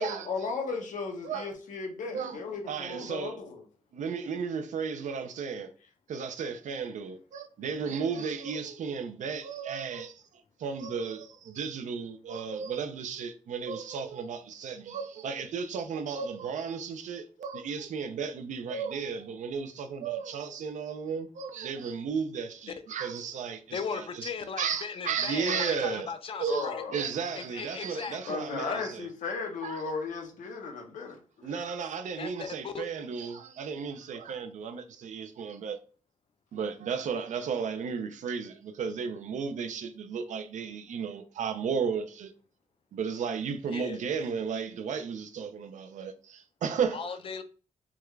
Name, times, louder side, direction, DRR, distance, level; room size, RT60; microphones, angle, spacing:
voice 1, 0.0-3.6 26.5-27.0 28.3-31.6, left 4 dB, 85° left, 0.8 m, -36 dB
voice 2, 2.7-3.4 3.9-5.7 6.1-10.2 10.6-24.3 24.6-26.1 26.4-29.1 29.6-29.8 31.4-35.8 36.5-42.3 42.9-47.0, right 6 dB, 75° right, 0.5 m, -34 dB
voice 3, 23.7-26.8 27.3-28.4 28.7-28.8 32.2-32.9 43.7-44.0 46.9-47.4, left 6 dB, 45° left, 0.4 m, -37 dB
3.6 x 2.3 x 3.1 m
wide cardioid pair, 130°, 13 cm